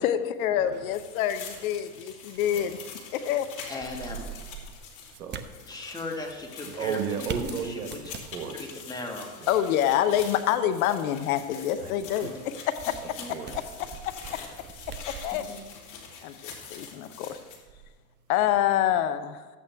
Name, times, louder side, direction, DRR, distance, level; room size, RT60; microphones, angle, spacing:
voice 1, 0.0-2.8 3.1-3.8 9.5-12.3 12.9-13.0 13.5-13.6 14.0-14.4 15.1-15.4 16.2-17.4 18.3-19.4, left 11 dB, 65° left, 11 dB, 0.8 m, -26 dB
voice 2, 0.5-0.9 2.5-2.8 5.1-5.4 6.6-8.8 9.4-9.5 11.8-11.9 12.2-12.3 13.2-13.5, right 6 dB, 80° right, 6 dB, 1.5 m, -34 dB
sound 1, 0.7-18.8, right 6 dB, 25° right, 0.8 m, -46 dB
sound 2, 0.9-17.6, left 6 dB, 40° left, 2.6 m, -44 dB
voice 3, 3.7-4.2 5.7-7.6 8.9-9.3 13.2-13.3 15.5-15.6, left 2 dB, 10° left, 0 dB, 1.9 m, -37 dB
13.0 x 8.5 x 3.5 m, 1.5 s
hypercardioid pair, 105°, 45 cm